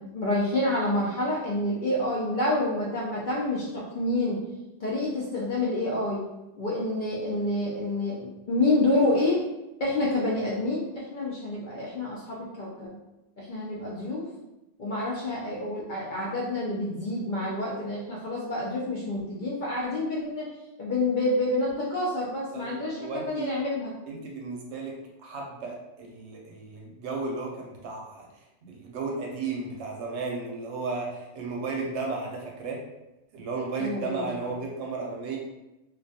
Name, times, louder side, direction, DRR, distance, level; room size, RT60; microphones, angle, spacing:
voice 1, 0.0-4.4 4.8-6.2 6.6-9.4 9.8-13.0 13.4-14.2 14.8-20.5 20.8-23.9 33.8-34.5, left 2 dB, 55° left, -6 dB, 0.6 m, -28 dB
voice 2, 22.5-23.5 24.1-32.8 33.3-35.4, right 3 dB, 75° right, 0 dB, 0.8 m, -34 dB
2.3 x 2.2 x 2.7 m, 0.96 s
omnidirectional pair, 1.2 m